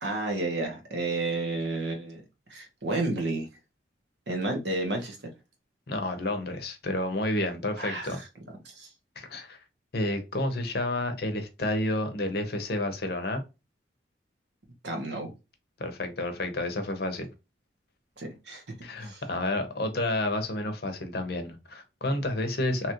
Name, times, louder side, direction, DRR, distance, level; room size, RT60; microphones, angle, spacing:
voice 1, 0.0-2.2 2.5-3.5 4.3-5.2 7.8-8.1 8.6-8.9 14.8-15.3 18.2-18.6 19.0-19.2, right 2 dB, 70° right, 1.0 m, -31 dB
voice 2, 5.9-8.2 9.2-9.6 9.9-13.4 15.8-17.3 18.8-22.9, left 1 dB, 55° left, 0.7 m, -30 dB
2.9 x 2.5 x 2.8 m
head